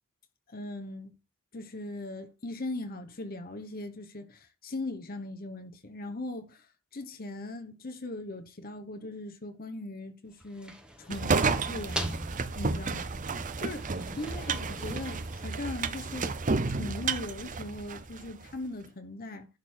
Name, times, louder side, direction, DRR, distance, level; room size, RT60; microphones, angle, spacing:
voice 1, 0.5-1.1 1.5-6.7 6.9-12.2 12.6-13.8 14.2-16.4 16.7-19.5, left 2 dB, 40° left, 1.0 m, -39 dB
sound 1, 10.3-16.3, right 1 dB, 5° right, 1.2 m, -42 dB
sound 2, 11.1-18.3, right 4 dB, 35° right, 0.6 m, -31 dB
11.5 x 3.9 x 6.4 m
head